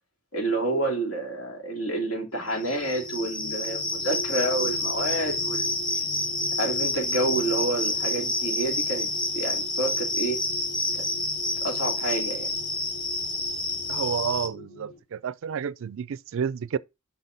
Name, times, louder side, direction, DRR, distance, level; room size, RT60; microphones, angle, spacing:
voice 1, 0.3-5.7 6.6-9.1 9.3-10.4 10.9-11.0 11.6-12.5, right 2 dB, 70° left, 2.7 m, -28 dB
sound 1, 2.2-15.0, left 1 dB, 50° left, 1.5 m, -43 dB
sound 2, 2.6-14.5, left 2 dB, 25° left, 1.1 m, -29 dB
voice 2, 13.9-16.8, right 7 dB, 65° right, 0.4 m, -30 dB
5.8 x 5.7 x 3.9 m
head